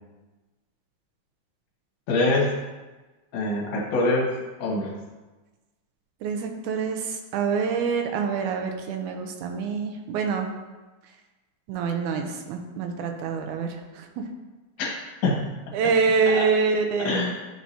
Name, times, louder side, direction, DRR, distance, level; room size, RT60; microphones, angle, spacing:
voice 1, 2.1-2.6 3.3-4.3 4.6-4.9 14.8-14.9 15.2-15.4 16.3-16.4 17.0-17.3, left 2 dB, 75° left, -3 dB, 2.7 m, -24 dB
voice 2, 6.2-10.5 11.7-13.7 14.0-14.1 15.7-17.2, right 5 dB, 80° right, 4 dB, 2.0 m, -26 dB
10.0 x 4.8 x 2.7 m, 1.2 s
omnidirectional pair, 3.6 m